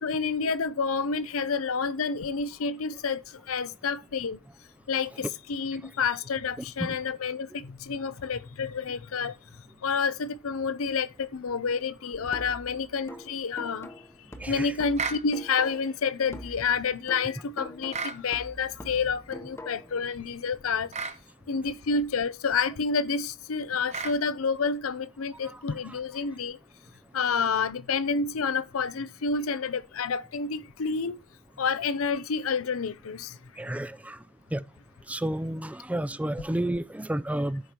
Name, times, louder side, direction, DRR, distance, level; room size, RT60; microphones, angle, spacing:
voice 1, 0.0-4.4 4.9-9.4 9.8-13.9 14.5-20.9 21.5-26.6 27.1-31.2 31.6-33.4, left 5 dB, 80° left, 0.6 m, -29 dB
sound 1, 12.3-16.0 16.3-20.0, equal, 15° left, 0.9 m, -44 dB
voice 2, 14.4-14.7 25.8-26.0 33.6-34.2 34.5-34.6 35.1-37.6, right 1 dB, 5° right, 0.4 m, -31 dB
sound 2, 15.0-15.3 17.9-18.2 20.9-21.2 23.9-24.2, right 5 dB, 35° right, 0.8 m, -32 dB
15.5 x 5.1 x 2.9 m
head